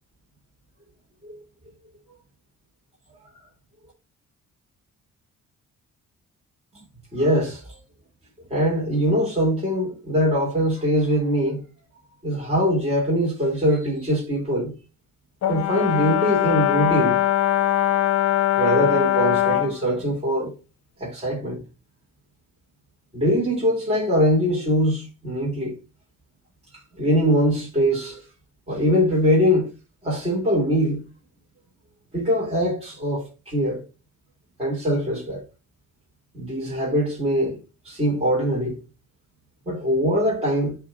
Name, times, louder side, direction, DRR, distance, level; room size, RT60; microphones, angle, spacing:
voice 1, 7.1-7.8 8.5-11.6 12.2-14.7 15.5-17.2 18.6-20.5 21.0-21.6 23.1-25.7 27.0-28.2 28.7-29.7 30.0-31.0 32.1-33.8 34.6-35.4 36.3-37.6 37.8-38.7 39.7-40.8, equal, 20° right, 3.5 m, -22 dB
Brass instrument, 15.4-19.8, left 12 dB, 55° left, 0.7 m, -21 dB
9.0 x 3.7 x 4.2 m
cardioid pair, 90°, 30 cm